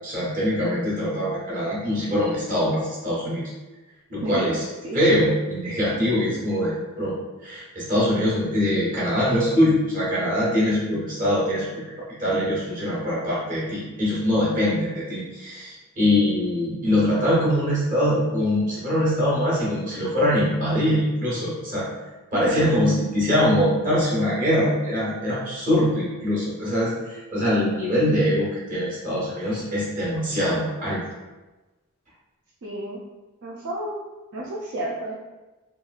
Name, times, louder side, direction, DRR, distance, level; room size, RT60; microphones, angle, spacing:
voice 1, 0.0-3.4 4.1-4.6 4.9-7.1 7.4-11.6 12.2-21.9 22.3-31.0, equal, 35° right, -7 dB, 1.1 m, -23 dB
voice 2, 32.6-33.0 33.4-34.0 34.3-35.1, right 1 dB, 60° right, -4 dB, 0.4 m, -31 dB
3.0 x 2.3 x 2.4 m, 1.1 s
head